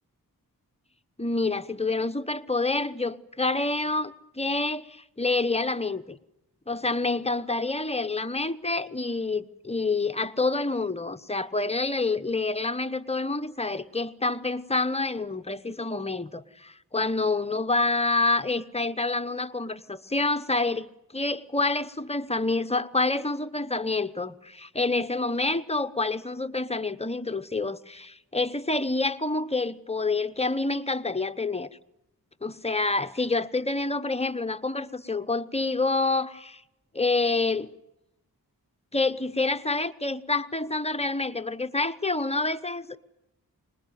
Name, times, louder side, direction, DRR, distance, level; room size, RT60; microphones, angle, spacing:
voice 1, 1.2-6.2 6.7-20.9 21.1-31.7 32.4-36.6 36.9-37.7 38.9-43.0, left 3 dB, 15° left, 0.9 m, -27 dB
26.0 x 21.0 x 9.3 m
wide cardioid pair, 105°, 35 cm